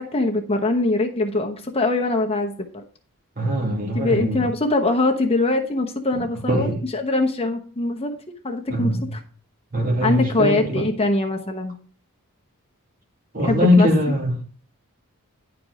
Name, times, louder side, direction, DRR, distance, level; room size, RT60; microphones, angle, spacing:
voice 1, 0.0-2.8 3.9-8.1 8.4-9.2 10.0-11.8 13.4-13.9, left 2 dB, 25° left, 1.0 m, -22 dB
voice 2, 3.4-4.5 6.1-6.8 8.7-9.1 9.7-10.8 13.3-14.4, left 1 dB, 40° right, 2.4 m, -21 dB
10.5 x 4.7 x 4.9 m
head